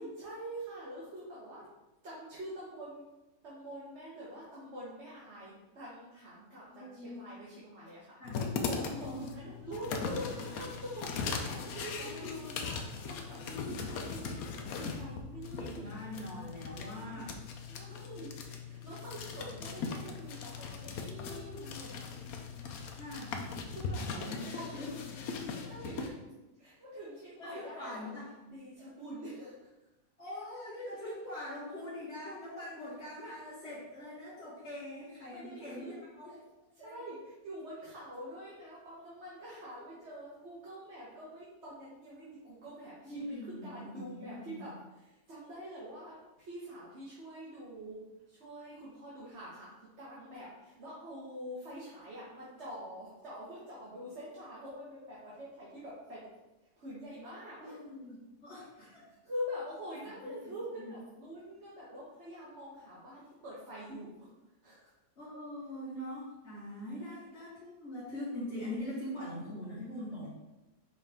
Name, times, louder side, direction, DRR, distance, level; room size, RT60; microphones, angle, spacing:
voice 1, 0.0-1.6 2.0-3.0 3.4-8.2 8.4-15.9 16.6-17.3 17.7-22.2 23.7-24.3 24.5-24.9 25.5-26.1 26.6-28.1 28.4-29.5 35.3-35.9 36.3-36.4 36.7-44.7 45.0-56.2 56.8-57.8 58.8-58.9 59.2-64.3 64.6-64.9, equal, 45° right, -8 dB, 1.6 m, -45 dB
voice 2, 6.7-7.2 8.2-8.4 8.8-9.3 12.0-12.6 13.4-13.8 15.6-17.3 17.9-18.1 21.1-21.8 22.9-23.4 24.0-24.9 25.6-25.7 26.0-26.1 27.4-28.3 30.2-36.3 36.8-37.1 39.5-39.7 43.0-44.6 57.6-59.0 60.8-60.9 65.2-70.3, left 1 dB, 45° left, -10 dB, 2.0 m, -43 dB
sound 1, 8.2-26.1, left 5 dB, 75° left, 1.1 m, -39 dB
5.3 x 4.8 x 3.6 m, 1.0 s
omnidirectional pair, 1.6 m